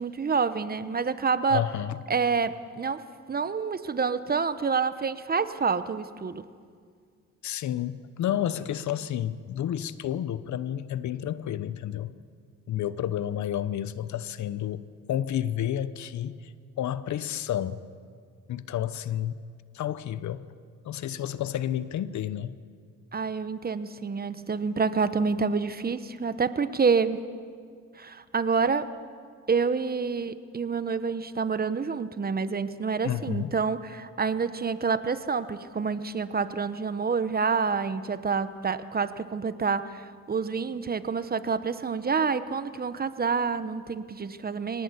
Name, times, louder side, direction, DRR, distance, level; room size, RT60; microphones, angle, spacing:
voice 1, 0.0-1.6 2.1-6.4 23.1-27.2 28.0-29.0 29.5-44.8, right 5 dB, 30° right, 13 dB, 1.0 m, -28 dB
voice 2, 1.5-2.0 7.4-12.1 12.7-16.5 16.8-17.8 18.5-19.4 19.7-20.4 20.8-22.5 33.0-33.5, left 11 dB, 70° left, 15 dB, 1.0 m, -30 dB
23.5 x 18.5 x 8.3 m, 2.1 s
cardioid pair, 90°, 30 cm